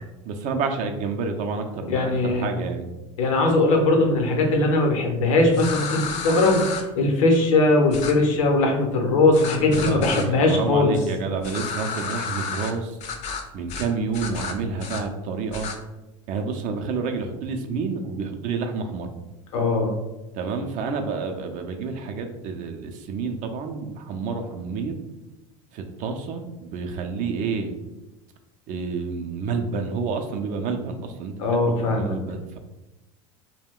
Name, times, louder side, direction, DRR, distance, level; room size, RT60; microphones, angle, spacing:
voice 1, 0.2-2.9 9.7-13.0 13.5-15.7 16.3-19.1 20.3-24.9 25.7-27.8 28.7-31.3 31.6-32.6, right 4 dB, 50° right, 5 dB, 0.5 m, -29 dB
voice 2, 1.9-2.4 3.2-6.6 7.0-10.9 19.5-19.9 31.4-32.2, left 2 dB, 85° left, 2 dB, 0.7 m, -20 dB
sound 1, 5.5-6.8 7.9-8.1 9.3-10.3 11.4-12.7 13.0-13.4 13.7-13.9 14.1-15.0 15.5-15.8, left 5 dB, 40° left, 0.5 m, -31 dB
2.3 x 2.1 x 3.5 m, 1.0 s
supercardioid pair, 105°, 17 cm